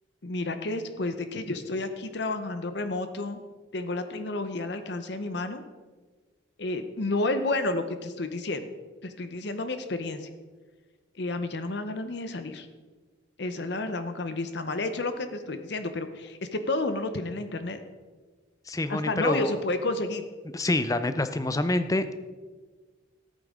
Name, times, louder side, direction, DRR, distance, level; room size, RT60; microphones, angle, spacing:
voice 1, 0.2-3.4 3.7-5.6 6.6-8.7 9.0-10.3 11.2-12.7 13.4-17.8 18.9-20.2, left 2 dB, 55° left, 9 dB, 0.7 m, -31 dB
voice 2, 18.7-19.5 20.5-22.2, left 2 dB, 15° left, 11 dB, 0.4 m, -27 dB
14.0 x 8.7 x 3.7 m, 1.4 s
head